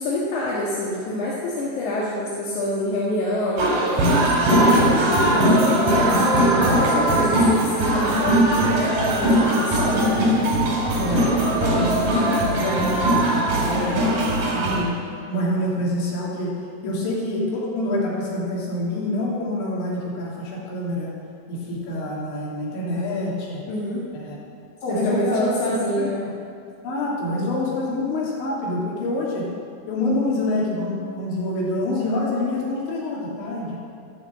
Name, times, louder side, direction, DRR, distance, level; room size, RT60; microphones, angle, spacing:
voice 1, 0.0-3.8 4.3-10.2 13.6-13.8 16.8-17.1 23.7-24.1 24.9-26.3, left 1 dB, 55° left, -6 dB, 2.6 m, -26 dB
sound 1, 3.6-14.8, right 1 dB, 50° right, 4.7 m, -20 dB
voice 2, 10.9-14.3 14.5-15.0 15.3-16.5 16.8-21.1 21.5-23.6 24.1-24.4 24.8-26.1 26.8-29.5 29.9-33.8, left 1 dB, 85° left, -5 dB, 5.4 m, -26 dB
14.0 x 10.5 x 7.8 m, 2.4 s
omnidirectional pair, 5.1 m